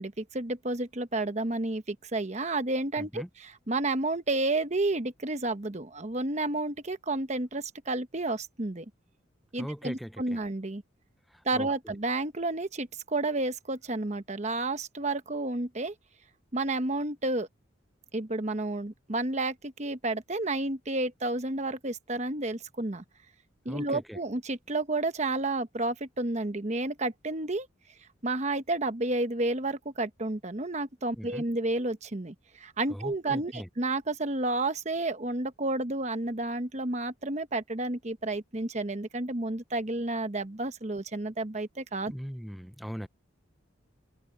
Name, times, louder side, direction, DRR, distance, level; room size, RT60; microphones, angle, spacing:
voice 1, 0.0-8.9 9.5-10.8 11.4-15.9 16.5-17.5 18.1-23.0 23.6-27.7 28.2-42.1, right 2 dB, 35° right, 1.1 m, -31 dB
voice 2, 3.0-3.3 9.6-10.4 11.3-11.9 23.7-24.2 31.2-31.4 32.9-33.7 42.1-43.1, equal, ahead, 0.6 m, -40 dB
head